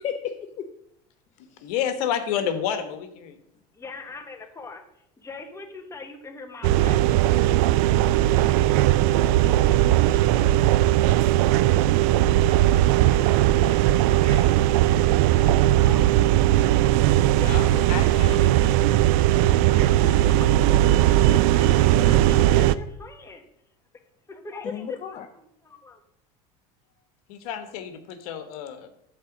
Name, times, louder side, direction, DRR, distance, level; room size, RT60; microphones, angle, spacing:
voice 1, 0.0-0.7 1.6-1.7 19.4-20.5 24.7-25.3, left 8 dB, 40° left, 5 dB, 0.7 m, -35 dB
voice 2, 1.6-3.4 17.4-18.4 27.3-28.9, left 9 dB, 80° left, 8 dB, 1.2 m, -30 dB
voice 3, 3.8-4.8 5.2-7.0 8.0-8.2 8.7-9.2 9.5-9.9 10.6-11.1 11.5-11.9 13.1-14.6 15.3-16.1 17.1-18.5 18.8-18.9 19.7-20.0 21.1-23.4 24.3-26.0, left 4 dB, 15° left, 4 dB, 1.1 m, -43 dB
sound 1, 6.6-22.8, right 14 dB, 75° right, 0.4 m, -19 dB
9.0 x 3.8 x 7.1 m, 0.78 s
supercardioid pair, 120°, 19 cm